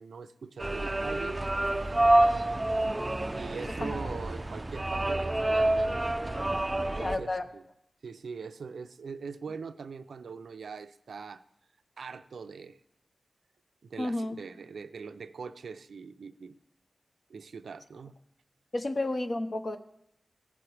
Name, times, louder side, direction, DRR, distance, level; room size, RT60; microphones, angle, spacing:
voice 1, 0.0-1.8 3.3-5.8 6.7-7.6 8.0-11.4 12.0-12.8 13.8-16.6 17.3-18.2, right 5 dB, 85° right, 12 dB, 0.4 m, -42 dB
sound 1, 0.6-7.2, right 1 dB, 20° right, 0.4 m, -27 dB
voice 2, 3.8-4.1 7.0-7.5 14.0-14.4 18.7-19.8, left 2 dB, 40° left, 8 dB, 0.7 m, -31 dB
16.0 x 5.9 x 3.3 m, 0.79 s
wide cardioid pair, 90°, 0 cm